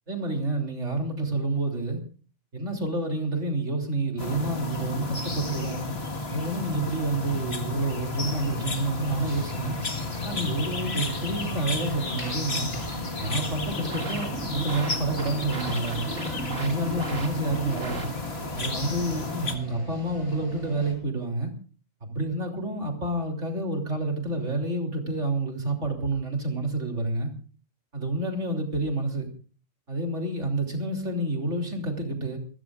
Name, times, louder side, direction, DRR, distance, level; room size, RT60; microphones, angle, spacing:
voice 1, 0.1-2.0 2.5-5.9 6.3-9.8 10.2-12.7 13.2-16.0 16.5-18.1 18.6-21.5 22.0-27.3 27.9-29.3 29.9-32.4, right 2 dB, 65° right, 2 dB, 3.6 m, -29 dB
sound 1, 4.2-19.6, left 3 dB, 50° left, 2.0 m, -32 dB
sound 2, 8.2-20.9, equal, 25° left, 7.5 m, -41 dB
sound 3, 13.6-18.5, right 3 dB, 80° right, 2.7 m, -38 dB
28.0 x 15.0 x 2.5 m, 0.39 s
omnidirectional pair, 1.3 m